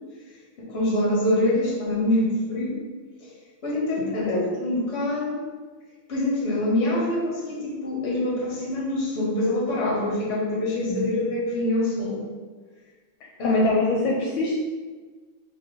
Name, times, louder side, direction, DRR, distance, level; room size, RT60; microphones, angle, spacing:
voice 1, 0.6-2.8 3.2-3.3 3.6-5.4 6.1-12.2 13.4-13.7, left 1 dB, 35° left, -5 dB, 1.2 m, -25 dB
voice 2, 4.0-4.4 10.9-11.0 13.4-14.6, left 3 dB, 75° left, -3 dB, 1.4 m, -24 dB
4.0 x 3.2 x 3.9 m, 1.4 s
omnidirectional pair, 2.4 m